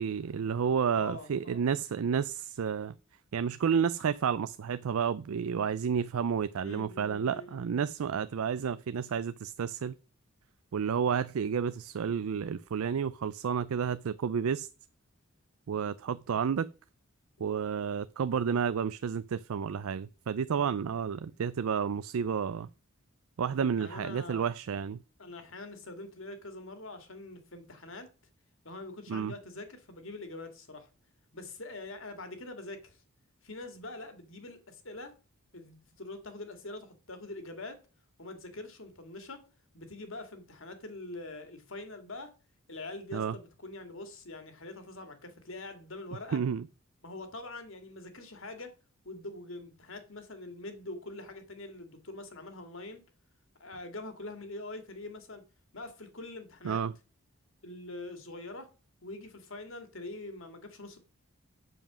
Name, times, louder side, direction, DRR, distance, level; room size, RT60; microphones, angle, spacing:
voice 1, 0.0-2.9 3.3-9.9 10.7-14.7 15.7-16.7 17.4-22.7 23.4-25.0 29.1-29.3 43.1-43.4 46.3-46.7 56.6-56.9, right 7 dB, 75° right, 0.4 m, -31 dB
voice 2, 0.9-1.6 6.6-7.8 17.4-17.5 23.5-24.5 25.2-28.1 28.6-30.9 31.3-33.0 33.4-35.1 35.5-37.8 38.2-39.5 39.7-42.3 42.7-46.4 47.0-48.8 49.0-53.0 53.6-55.4 55.7-56.8 57.6-58.7 59.0-61.0, left 2 dB, 60° left, 2.1 m, -44 dB
7.8 x 7.1 x 6.1 m
head